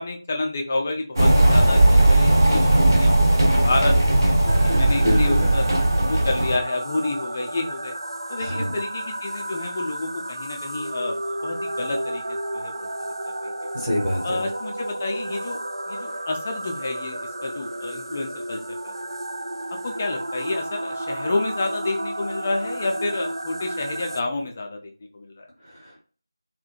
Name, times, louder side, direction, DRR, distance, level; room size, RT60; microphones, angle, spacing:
voice 1, 0.0-2.7 2.9-4.0 4.2-5.7 6.1-7.9 8.3-12.2 12.5-13.0 13.4-13.5 14.2-15.6 15.9-18.9 19.8-24.8 25.1-25.5, left 2 dB, 20° left, 3 dB, 0.3 m, -29 dB
sound 1, 1.2-6.6, right 1 dB, 55° right, 0.7 m, -17 dB
sound 2, 4.5-24.2, right 1 dB, 75° right, 0.3 m, -32 dB
voice 2, 5.0-5.5 8.4-8.7 13.7-14.5 25.6-26.0, equal, 10° right, -8 dB, 0.7 m, -26 dB
2.6 x 2.1 x 2.3 m, 0.39 s
figure-of-eight pair, 170°, 2 cm